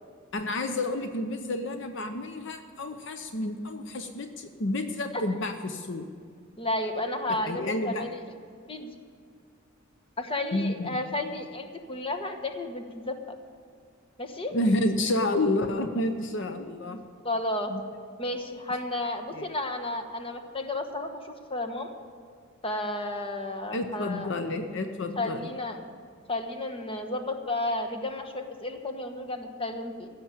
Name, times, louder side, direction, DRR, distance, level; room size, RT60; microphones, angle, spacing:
voice 1, 0.3-6.1 7.4-8.1 10.5-11.0 14.5-17.0 17.7-17.8 19.3-19.5 23.7-25.5, left 1 dB, 60° left, 8 dB, 0.8 m, -30 dB
voice 2, 6.6-8.2 8.7-8.9 10.2-13.3 14.2-14.6 17.2-17.7 18.2-21.9 22.6-24.3 25.2-25.9 26.3-30.1, left 2 dB, 25° left, 5 dB, 1.1 m, -32 dB
16.0 x 7.0 x 8.7 m, 2.3 s
head